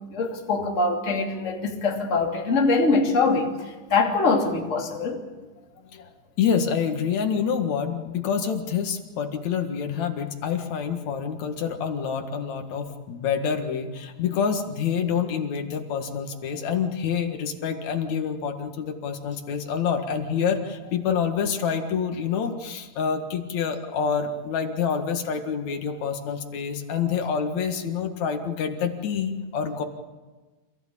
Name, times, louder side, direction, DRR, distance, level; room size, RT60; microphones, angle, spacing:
voice 1, 0.1-5.2, left 3 dB, 20° left, 2.7 m, -23 dB
voice 2, 6.4-29.8, left 7 dB, 55° left, 2.8 m, -27 dB
27.0 x 16.0 x 8.5 m
omnidirectional pair, 4.3 m